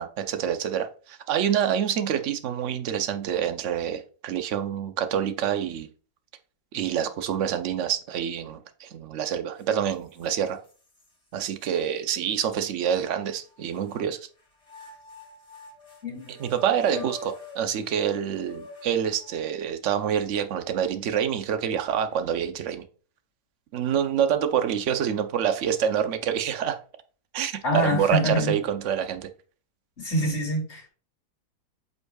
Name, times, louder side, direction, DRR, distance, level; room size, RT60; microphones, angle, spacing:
voice 1, 0.0-5.9 6.7-10.6 11.3-14.2 16.4-22.8 23.7-26.8 27.3-29.3, right 9 dB, 60° right, 0.9 m, -27 dB
sound 1, 9.6-9.7 10.2-11.1 11.7-11.8 12.9-14.0 14.6-19.5, left 3 dB, 20° left, 1.8 m, -45 dB
voice 2, 16.0-16.3 16.9-17.0 27.6-28.5 30.0-30.9, equal, 50° left, 3.0 m, -26 dB
8.2 x 5.3 x 2.3 m
omnidirectional pair, 1.8 m